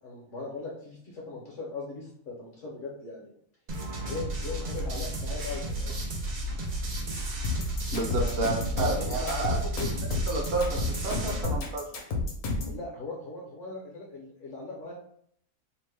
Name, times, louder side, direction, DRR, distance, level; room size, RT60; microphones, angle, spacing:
voice 1, 0.0-3.3 4.0-6.0 6.7-6.9 8.1-8.4 8.7-9.9 12.6-14.9, left 3 dB, 65° left, -3 dB, 1.1 m, -39 dB
sound 1, 3.7-11.4, right 1 dB, 75° right, 0.3 m, -33 dB
sound 2, 7.4-12.8, left 3 dB, 80° left, 1.2 m, -30 dB
voice 2, 7.9-9.6 10.3-11.8, right 3 dB, 55° right, -1 dB, 0.9 m, -30 dB
2.9 x 2.1 x 3.2 m, 0.64 s
omnidirectional pair, 1.5 m